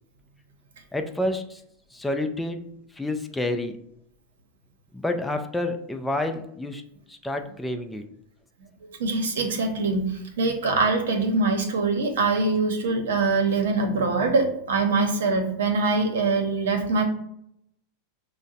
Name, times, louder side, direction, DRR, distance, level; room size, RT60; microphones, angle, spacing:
voice 1, 0.9-1.6 1.9-2.7 3.0-3.8 4.9-6.8 7.1-8.1, left 1 dB, 10° left, 5 dB, 0.4 m, -29 dB
voice 2, 9.0-10.1 10.4-17.0, right 3 dB, 80° right, 4 dB, 0.8 m, -23 dB
5.4 x 2.1 x 2.6 m, 0.74 s
hypercardioid pair, 100°, 0 cm